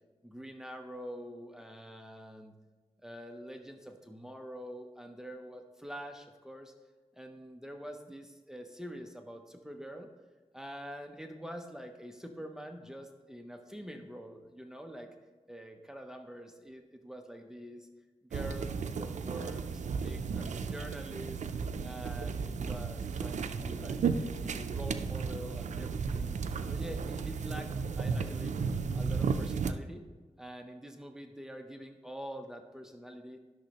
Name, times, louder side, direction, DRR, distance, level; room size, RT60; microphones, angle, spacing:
voice 1, 0.2-2.5 3.0-6.7 7.1-10.1 10.5-15.1 15.5-17.9 18.2-26.4 26.6-27.7 28.0-28.5 28.9-30.0 30.4-33.4, equal, 5° right, 5 dB, 0.6 m, -46 dB
sound 1, 18.3-29.7, right 5 dB, 85° right, 0.4 m, -34 dB
11.5 x 6.2 x 2.9 m, 1.3 s
wide cardioid pair, 95°, 12 cm